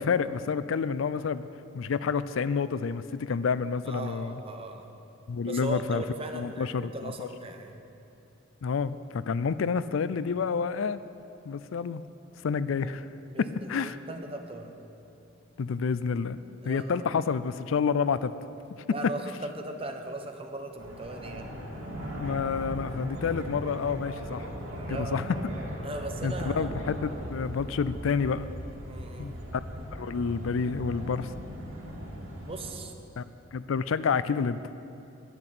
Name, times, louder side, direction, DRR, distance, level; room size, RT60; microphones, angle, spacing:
voice 1, 0.0-1.5 1.7-4.4 5.3-6.0 6.3-7.3 8.6-11.0 11.5-12.0 12.4-13.0 13.4-14.0 15.6-16.4 16.7-18.3 19.0-19.1 22.2-24.5 24.9-25.4 26.2-28.5 29.2-29.3 29.9-31.3 33.2-33.3 33.5-34.6, left 5 dB, 70° left, 15 dB, 0.4 m, -29 dB
voice 2, 3.8-5.0 5.5-7.8 13.3-14.8 16.6-17.1 18.8-21.6 24.9-25.2 25.8-26.9 28.9-29.4 32.4-32.9, right 2 dB, 25° right, 4 dB, 1.0 m, -38 dB
sound 1, 20.8-32.7, equal, 85° right, 3.3 m, -38 dB
11.0 x 7.8 x 9.9 m, 2.8 s
head